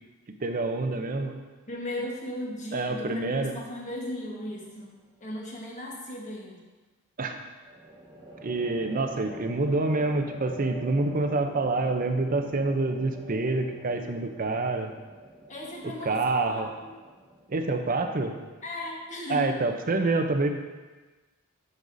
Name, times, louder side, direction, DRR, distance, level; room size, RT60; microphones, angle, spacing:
voice 1, 0.4-1.3 2.7-3.5 7.2-7.4 8.4-14.9 15.8-16.7 17.5-18.4 19.3-20.5, right 3 dB, 40° right, 5 dB, 0.5 m, -27 dB
voice 2, 1.7-4.9 5.2-6.6 15.5-16.9 18.6-19.6, left 1 dB, 35° left, -2 dB, 1.3 m, -36 dB
sound 1, 4.5-5.1 7.6-19.0, right 1 dB, 20° right, 1.7 m, -46 dB
11.0 x 5.4 x 2.6 m, 1.3 s
head